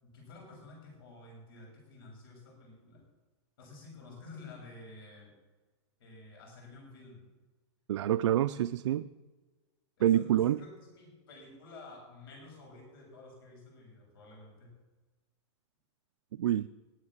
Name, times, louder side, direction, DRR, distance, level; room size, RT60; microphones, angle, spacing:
voice 1, 0.0-3.0 3.6-5.3 6.0-7.3 10.0-14.8, left 2 dB, 55° left, 6.5 m, -51 dB
voice 2, 7.9-9.1 10.0-10.6 16.4-16.7, right 11 dB, 85° right, 0.5 m, -27 dB
19.5 x 7.4 x 7.2 m
supercardioid pair, 175°, 15 cm